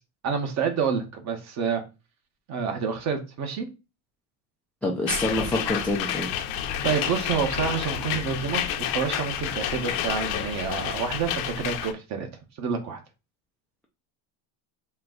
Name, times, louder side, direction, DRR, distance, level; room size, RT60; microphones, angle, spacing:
voice 1, 0.2-1.8 2.5-3.7 6.8-12.3 12.6-13.0, right 6 dB, 40° right, 1.1 m, -28 dB
voice 2, 4.8-6.3, left 1 dB, 5° left, 0.3 m, -26 dB
sound 1, 5.1-11.9, left 10 dB, 70° left, 0.8 m, -30 dB
4.5 x 2.3 x 3.8 m
cardioid pair, 145°, 43 cm